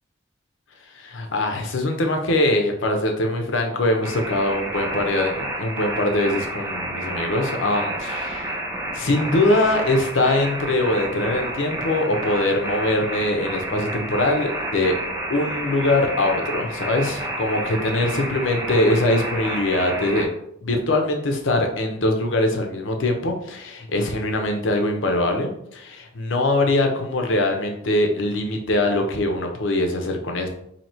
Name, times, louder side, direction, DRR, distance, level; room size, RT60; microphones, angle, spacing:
voice 1, 0.9-8.5 8.9-14.9 15.3-20.3 20.6-30.5, left 1 dB, 80° left, 3 dB, 0.7 m, -22 dB
sound 1, 4.0-20.2, right 1 dB, 15° right, 0.6 m, -30 dB
2.9 x 2.8 x 4.3 m, 0.74 s
head